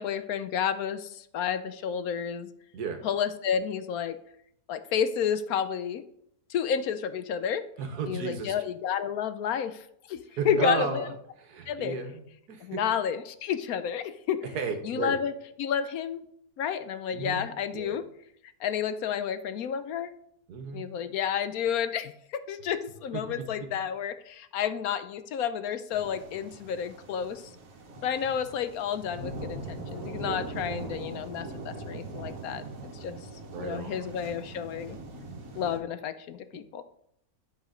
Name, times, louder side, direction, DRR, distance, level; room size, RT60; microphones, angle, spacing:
voice 1, 0.0-2.5 3.0-4.2 4.7-6.0 6.5-7.6 8.1-11.1 11.7-12.0 12.6-14.4 14.8-15.3 15.6-16.2 16.6-18.0 18.6-20.1 20.7-27.4 28.0-33.2 33.6-35.0 35.5-36.8, left 8 dB, 70° left, 11 dB, 1.0 m, -31 dB
voice 2, 7.8-8.5 10.4-11.1 11.4-12.2 12.5-12.8 14.4-15.2 17.1-17.4 17.7-18.0 20.5-20.9 23.1-23.7 33.5-34.1, right 5 dB, 80° right, 6 dB, 1.7 m, -34 dB
sound 1, 25.9-35.8, right 3 dB, 60° right, 1.7 m, -41 dB
10.5 x 5.0 x 5.0 m, 0.71 s
omnidirectional pair, 1.7 m